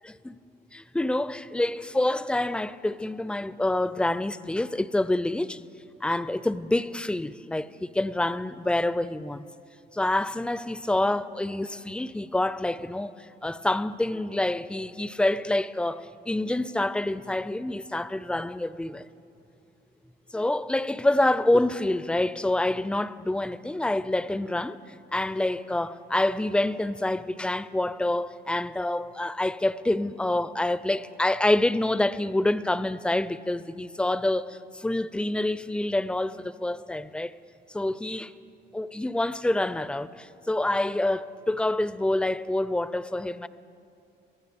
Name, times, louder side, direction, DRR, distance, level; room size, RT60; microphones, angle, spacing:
voice 1, 0.7-5.7 6.0-9.5 9.9-13.1 13.4-19.1 20.3-24.8 25.1-37.4 37.7-38.3 38.7-43.5, left 1 dB, 5° left, 0.4 m, -27 dB
24.0 x 16.0 x 3.5 m
cardioid pair, 90°, 20 cm